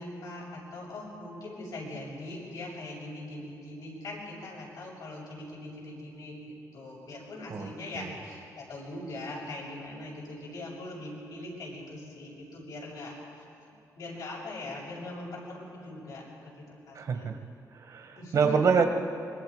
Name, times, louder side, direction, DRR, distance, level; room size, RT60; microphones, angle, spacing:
voice 1, 0.0-13.1 13.9-17.3 18.1-18.7, left 1 dB, 85° left, -4 dB, 6.7 m, -41 dB
voice 2, 16.9-17.4 17.7-18.9, right 5 dB, 55° right, 6 dB, 1.5 m, -26 dB
25.5 x 22.5 x 5.0 m, 2.6 s
wide cardioid pair, 155°, 7 cm